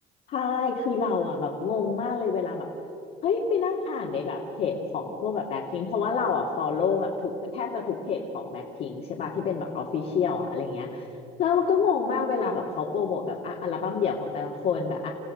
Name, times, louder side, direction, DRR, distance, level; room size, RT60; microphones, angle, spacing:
voice 1, 0.3-2.7 3.2-11.0 11.4-15.1, left 5 dB, 65° left, -3 dB, 2.3 m, -28 dB
29.0 x 16.0 x 6.6 m, 2.8 s
cardioid pair, 110°, 17 cm